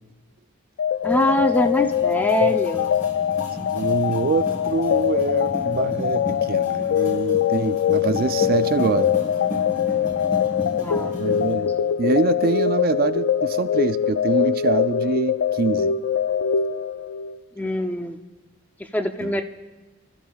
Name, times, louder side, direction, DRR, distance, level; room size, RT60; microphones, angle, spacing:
sound 1, 0.8-17.4, left 9 dB, 70° left, 0.3 m, -23 dB
sound 2, 1.0-11.5, left 1 dB, 40° left, 3.8 m, -35 dB
voice 1, 1.0-2.9 10.8-11.1 11.5-11.7 17.6-18.2 18.9-19.4, equal, 10° left, 6 dB, 0.5 m, -24 dB
voice 2, 3.7-9.1 11.2-16.0 19.2-19.4, right 4 dB, 45° right, 11 dB, 0.4 m, -25 dB
25.5 x 13.0 x 2.4 m, 1.2 s
head